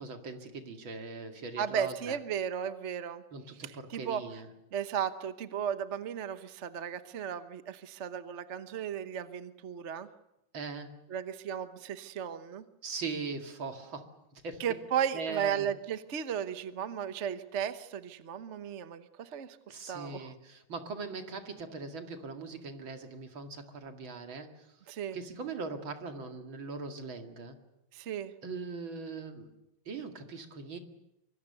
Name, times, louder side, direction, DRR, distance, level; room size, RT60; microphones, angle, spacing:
voice 1, 0.0-2.2 3.3-4.5 10.5-11.0 12.8-14.6 15.1-15.7 19.7-27.6 28.4-29.5 29.9-30.8, right 4 dB, 65° right, 5 dB, 3.0 m, -40 dB
voice 2, 1.6-3.2 3.6-4.2 4.7-10.1 11.1-12.6 14.6-19.6 19.9-20.3 24.9-25.2 27.9-28.3, right 8 dB, 45° right, 10 dB, 0.9 m, -35 dB
25.0 x 24.5 x 6.8 m, 0.87 s
omnidirectional pair, 2.4 m